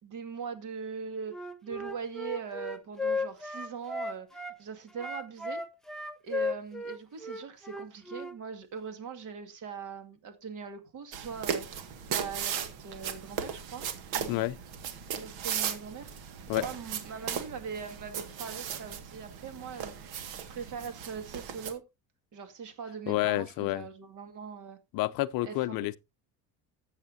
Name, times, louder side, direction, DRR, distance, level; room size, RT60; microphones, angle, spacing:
voice 1, 0.0-5.6 6.2-13.9 14.1-14.5 15.1-19.9 20.4-21.8 22.3-24.8 25.4-26.0, right 6 dB, 50° right, 2.1 m, -41 dB
Wind instrument woodwind instrument, 1.3-4.6 4.9-8.3, left 2 dB, ahead, 0.8 m, -35 dB
sound 1, 11.1-21.7, right 8 dB, 75° right, 1.9 m, -37 dB
voice 2, 23.1-23.8 24.9-26.0, left 17 dB, 65° left, 0.6 m, -29 dB
13.5 x 8.3 x 2.7 m
cardioid pair, 135°, 38 cm